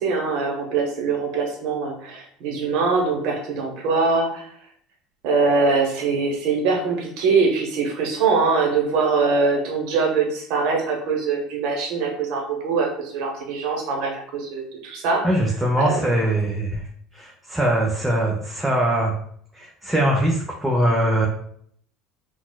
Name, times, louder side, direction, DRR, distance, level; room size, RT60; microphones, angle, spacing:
voice 1, 0.0-4.5 5.2-15.2 15.8-16.0, right 4 dB, 70° right, 1 dB, 0.9 m, -23 dB
voice 2, 15.2-16.9 17.1-19.2 19.5-21.3, right 1 dB, 5° right, -3 dB, 0.6 m, -22 dB
3.9 x 2.3 x 2.2 m, 0.64 s
supercardioid pair, 90°, 0 cm